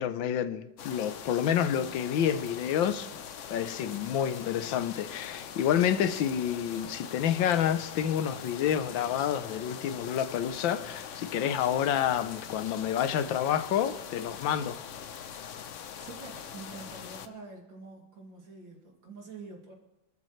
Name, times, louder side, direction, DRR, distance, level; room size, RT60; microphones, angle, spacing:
voice 1, 0.0-3.1 3.5-14.8, left 9 dB, 85° left, 1.5 m, -29 dB
sound 1, 0.8-17.3, left 8 dB, 60° left, 0.8 m, -43 dB
voice 2, 16.0-19.7, right 3 dB, 75° right, 3.4 m, -46 dB
27.5 x 13.0 x 3.2 m
omnidirectional pair, 2.0 m